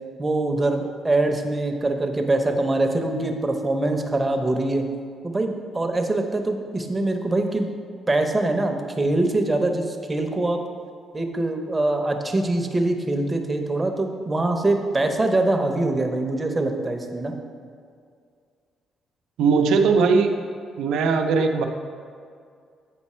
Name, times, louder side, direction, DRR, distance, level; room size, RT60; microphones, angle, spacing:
voice 1, 0.2-4.8 5.2-7.7 8.1-10.6 11.1-17.3, right 2 dB, 20° right, 4 dB, 0.8 m, -23 dB
voice 2, 19.4-20.3 20.8-21.7, right 5 dB, 85° right, 5 dB, 0.6 m, -19 dB
8.4 x 4.3 x 4.3 m, 2.2 s
cardioid pair, 90°, 0 cm